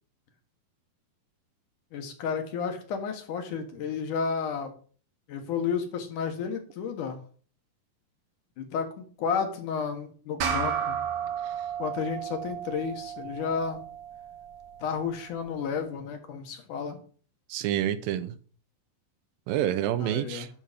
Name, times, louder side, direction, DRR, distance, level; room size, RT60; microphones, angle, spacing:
voice 1, 1.9-4.7 5.3-7.2 8.6-11.0 11.8-13.8 14.8-17.0 20.0-20.5, left 6 dB, 65° left, 2.9 m, -32 dB
sound 1, 10.4-15.2, right 8 dB, 60° right, 2.5 m, -33 dB
voice 2, 17.5-18.4 19.5-20.5, right 11 dB, 80° right, 2.5 m, -28 dB
11.0 x 6.5 x 5.2 m
omnidirectional pair, 4.1 m